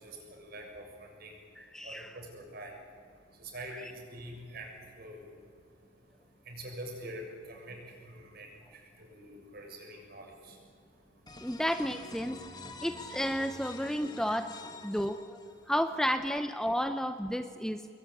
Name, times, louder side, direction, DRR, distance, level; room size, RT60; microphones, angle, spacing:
voice 1, 0.0-1.3 1.8-2.7 3.4-4.7 5.0-5.2 6.5-7.2 7.5-7.8 8.1-8.5 9.0-10.6, right 1 dB, 50° right, 2 dB, 7.0 m, -45 dB
voice 2, 1.6-2.1 3.7-3.8 11.4-12.4 12.8-14.5 14.8-15.4 15.7-17.9, equal, 5° left, 9 dB, 0.6 m, -32 dB
sound 1, 11.3-15.9, left 3 dB, 20° left, 2.0 m, -47 dB
26.0 x 22.0 x 9.8 m, 2.3 s
head